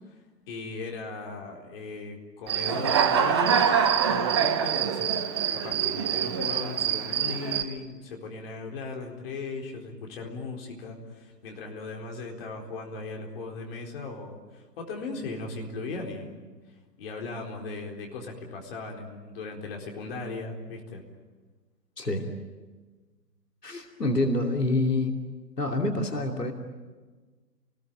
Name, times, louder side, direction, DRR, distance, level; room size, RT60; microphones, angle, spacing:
voice 1, 0.1-3.8 4.1-16.4 17.0-21.0, left 3 dB, 35° left, 1 dB, 4.3 m, -38 dB
Human voice / Cricket, 2.5-7.6, right 8 dB, 15° right, 0.8 m, -25 dB
voice 2, 22.0-22.3 23.6-25.2 25.6-26.5, left 2 dB, 75° left, 3 dB, 3.0 m, -27 dB
29.0 x 20.0 x 9.0 m, 1.3 s
figure-of-eight pair, 130°, 49 cm